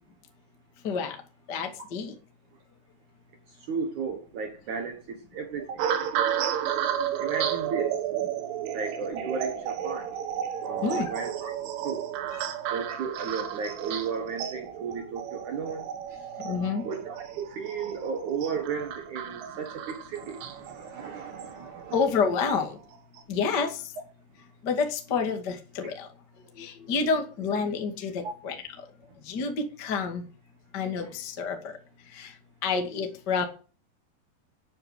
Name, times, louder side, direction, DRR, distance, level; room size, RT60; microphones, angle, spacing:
voice 1, 0.8-1.2 1.5-2.2 7.0-7.1 10.8-11.1 12.3-12.4 16.4-16.9 21.9-22.7 23.3-23.9 24.6-26.1 26.5-28.6 29.2-30.3 30.7-31.8 32.1-32.4 32.6-33.4, left 5 dB, 35° left, 1.7 m, -29 dB
voice 2, 3.5-5.9 7.2-8.0 8.7-10.1 10.6-11.5 11.8-12.1 12.7-16.3 16.8-22.0 25.8-25.9 28.2-28.3, right 6 dB, 60° right, 2.1 m, -34 dB
sound 1, 5.8-22.3 22.9-23.2, right 9 dB, 85° right, 4.2 m, -33 dB
11.0 x 9.8 x 8.1 m
omnidirectional pair, 5.4 m